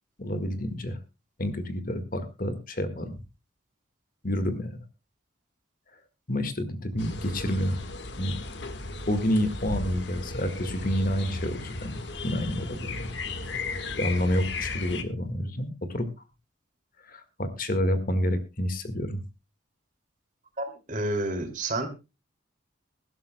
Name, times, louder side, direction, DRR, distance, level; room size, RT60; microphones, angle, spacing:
voice 1, 0.2-1.0 1.4-3.2 4.2-4.8 6.3-7.8 8.2-8.4 9.1-13.1 14.0-16.1 17.1-19.2, equal, 45° left, 9 dB, 1.7 m, -29 dB
sound 1, 7.0-15.0, left 3 dB, 60° left, 1.5 m, -35 dB
voice 2, 20.6-21.9, right 2 dB, 40° right, 4 dB, 2.6 m, -30 dB
22.0 x 12.0 x 2.2 m, 0.27 s
head